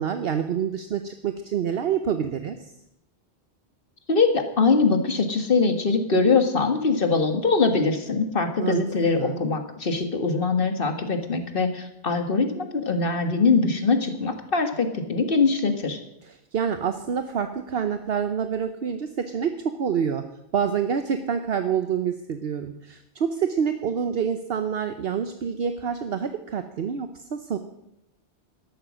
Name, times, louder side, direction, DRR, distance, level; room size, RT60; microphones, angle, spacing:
voice 1, 0.0-2.7 8.6-8.8 9.1-9.4 16.2-19.5 19.8-20.2 20.5-27.6, right 7 dB, 65° right, 8 dB, 1.0 m, -27 dB
voice 2, 4.1-16.0, left 4 dB, 55° left, 6 dB, 1.8 m, -22 dB
12.5 x 11.5 x 6.2 m, 0.84 s
omnidirectional pair, 1.1 m